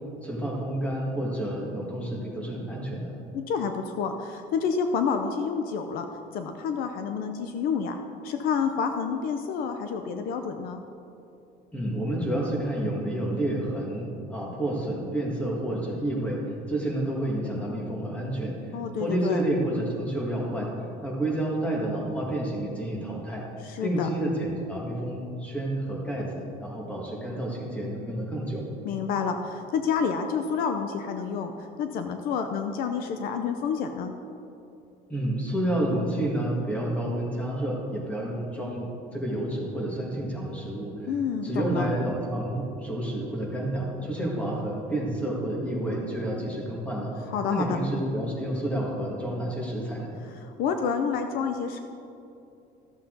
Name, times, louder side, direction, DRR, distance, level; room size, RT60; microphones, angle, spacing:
voice 1, 0.2-3.1 11.7-18.7 19.0-20.7 21.0-23.4 23.8-28.6 35.1-38.9 39.1-41.2 41.4-47.1 47.5-50.1, right 1 dB, 10° left, -3 dB, 1.8 m, -29 dB
voice 2, 3.3-6.1 6.3-8.0 8.2-10.8 18.7-19.4 23.6-24.1 28.8-34.1 41.0-41.9 47.3-47.8 50.3-51.8, left 6 dB, 60° left, 6 dB, 0.6 m, -29 dB
14.0 x 7.2 x 3.9 m, 2.7 s
cardioid pair, 160°, 17 cm